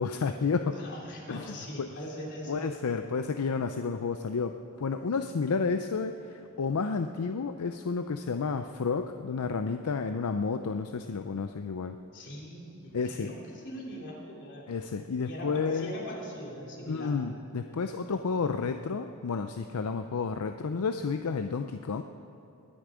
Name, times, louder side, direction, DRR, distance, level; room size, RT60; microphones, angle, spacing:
voice 1, 0.0-0.8 1.3-1.9 2.5-12.0 12.9-13.3 14.7-15.9 16.9-22.0, left 5 dB, 75° left, 8 dB, 0.5 m, -31 dB
voice 2, 0.7-2.7 12.1-14.7 15.2-17.1, equal, 55° left, -3 dB, 3.1 m, -41 dB
20.5 x 10.0 x 5.0 m, 2.9 s
head